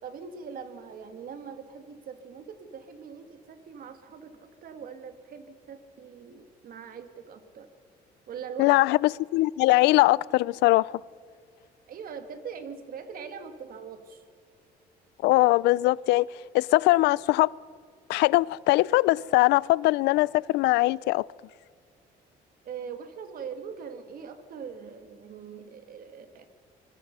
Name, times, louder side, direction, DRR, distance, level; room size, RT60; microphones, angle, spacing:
voice 1, 0.0-7.7 8.3-8.8 11.9-14.2 22.6-26.5, right 6 dB, 60° right, 2.3 m, -42 dB
voice 2, 8.6-9.0 9.3-10.9 15.2-16.3 16.5-17.5 18.1-21.2, left 19 dB, 85° left, 0.4 m, -21 dB
25.0 x 21.5 x 5.5 m
cardioid pair, 110°, 17 cm